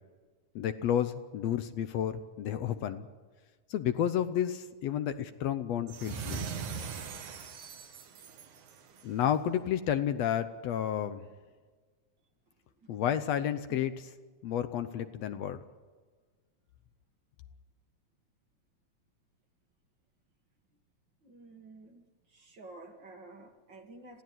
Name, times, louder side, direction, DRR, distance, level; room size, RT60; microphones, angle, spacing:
voice 1, 0.6-3.1 3.7-6.4 9.0-11.3 12.9-14.1 14.4-15.6, left 10 dB, 70° left, 11 dB, 1.8 m, -31 dB
sound 1, 5.9-9.2, right 6 dB, 90° right, 3.2 m, -40 dB
voice 2, 21.2-22.0 22.3-24.2, right 2 dB, 45° right, 5 dB, 1.9 m, -51 dB
26.0 x 16.0 x 9.3 m, 1.5 s
omnidirectional pair, 3.4 m